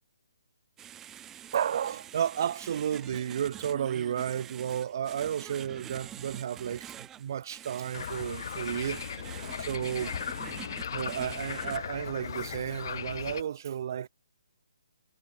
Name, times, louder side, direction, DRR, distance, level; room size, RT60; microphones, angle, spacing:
sound 1, 0.8-11.8, right 11 dB, 15° right, 1.2 m, -46 dB
voice 1, 1.5-9.0 9.6-10.2 10.9-14.1, right 9 dB, 45° right, 5.3 m, -32 dB
sound 2, 7.9-13.4, left 7 dB, 50° left, 4.7 m, -37 dB
figure-of-eight pair, 140°, 2 cm